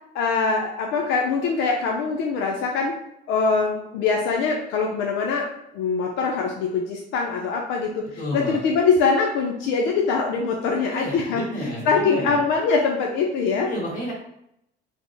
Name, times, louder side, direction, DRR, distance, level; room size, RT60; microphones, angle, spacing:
voice 1, 0.1-2.9 3.3-5.5 5.7-8.0 8.3-13.7, left 4 dB, 85° left, 1 dB, 0.5 m, -23 dB
voice 2, 8.2-8.6 10.9-12.3 13.6-14.1, equal, 45° left, -3 dB, 1.4 m, -31 dB
3.5 x 2.0 x 3.8 m, 0.77 s
cardioid pair, 140°, 19 cm